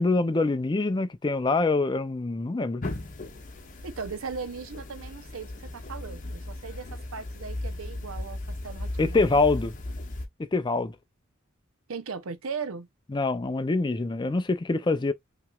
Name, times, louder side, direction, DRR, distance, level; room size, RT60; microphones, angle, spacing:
voice 1, 0.0-2.8 9.0-9.7 10.5-10.9 13.1-15.1, left 3 dB, 20° left, 0.4 m, -25 dB
sound 1, 2.8-10.3, left 1 dB, 40° left, 0.8 m, -37 dB
voice 2, 3.8-9.3 11.9-12.9, right 5 dB, 85° right, 0.7 m, -38 dB
5.9 x 3.0 x 2.3 m
head